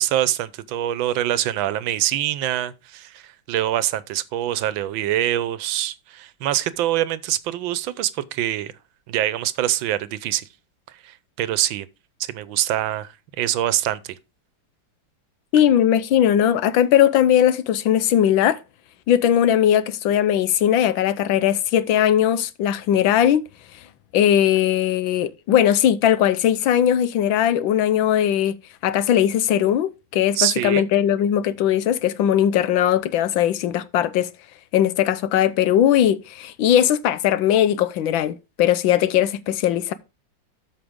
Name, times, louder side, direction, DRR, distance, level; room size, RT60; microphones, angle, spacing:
voice 1, 0.0-8.7 9.1-10.4 11.0-11.9 12.2-13.1 13.4-14.2 30.3-30.8, right 12 dB, 85° right, 1.5 m, -24 dB
voice 2, 15.5-18.6 19.1-23.4 24.1-28.6 28.8-34.3 34.7-39.9, left 10 dB, 85° left, 1.5 m, -19 dB
13.0 x 5.1 x 3.6 m
omnidirectional pair, 2.1 m